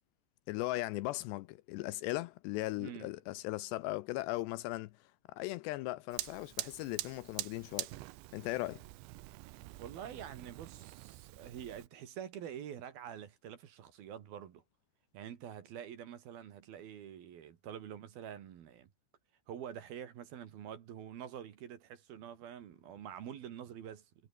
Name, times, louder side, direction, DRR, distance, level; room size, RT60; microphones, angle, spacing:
voice 1, 0.5-7.9 8.3-8.8, left 18 dB, 80° left, 2.6 m, -38 dB
voice 2, 2.8-3.1 9.8-14.6 15.1-18.9 19.5-24.1, right 9 dB, 60° right, 3.6 m, -46 dB
Fire, 6.1-11.9, right 19 dB, 85° right, 3.1 m, -45 dB
omnidirectional pair, 5.2 m